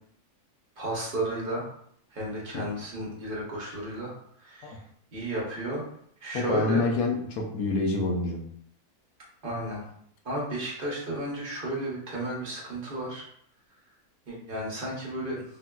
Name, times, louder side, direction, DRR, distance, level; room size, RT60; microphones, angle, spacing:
voice 1, 0.8-1.7 2.1-4.1 4.4-4.8 5.1-5.8 6.2-6.8 9.4-9.8 10.2-13.2 14.3-15.4, right 1 dB, 45° right, -4 dB, 0.8 m, -33 dB
voice 2, 6.3-8.4, left 3 dB, 80° left, 2 dB, 1.0 m, -27 dB
3.6 x 2.3 x 2.2 m, 0.67 s
omnidirectional pair, 1.6 m